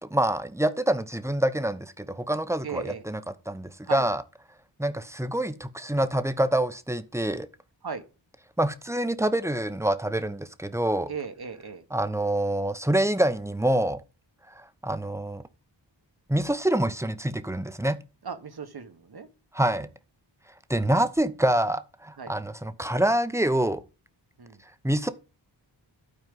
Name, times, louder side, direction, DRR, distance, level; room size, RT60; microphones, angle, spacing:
voice 1, 0.0-3.2 3.5-4.2 4.8-7.5 8.6-11.1 11.9-14.0 14.5-15.4 16.3-18.0 19.5-19.9 20.7-23.8 24.8-25.1, right 1 dB, 5° right, 0.9 m, -26 dB
voice 2, 2.6-3.0 3.8-4.1 7.8-8.0 11.1-11.8 18.2-19.3 22.2-22.3 24.4-24.6, right 5 dB, 55° right, 1.4 m, -36 dB
12.5 x 4.5 x 5.4 m
cardioid pair, 55°, 45 cm